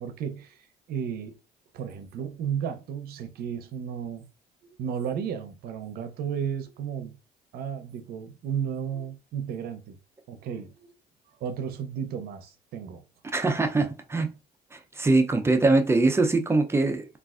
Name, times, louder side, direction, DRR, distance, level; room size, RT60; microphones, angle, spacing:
voice 1, 0.0-1.4 1.7-4.3 4.8-7.2 7.5-10.0 10.3-10.7 11.4-13.0, right 8 dB, 65° right, 0.6 m, -33 dB
voice 2, 13.3-14.3 14.7-17.1, right 3 dB, 15° right, 0.5 m, -22 dB
3.2 x 2.4 x 2.4 m
cardioid pair, 110°, 17 cm